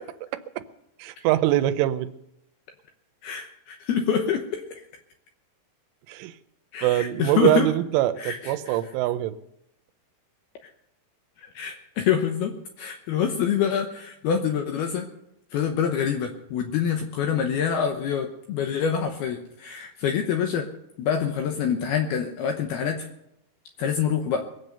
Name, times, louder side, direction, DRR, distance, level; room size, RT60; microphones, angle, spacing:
voice 1, 1.0-2.1 6.1-6.3 6.8-9.3, right 14 dB, 90° right, 10 dB, 3.2 m, -23 dB
voice 2, 3.2-4.8 6.7-7.7 8.2-8.8 11.5-15.1 15.5-20.7 21.0-23.1 23.8-24.5, left 7 dB, 75° left, 4 dB, 2.5 m, -26 dB
22.0 x 7.9 x 6.6 m, 0.81 s
omnidirectional pair, 5.5 m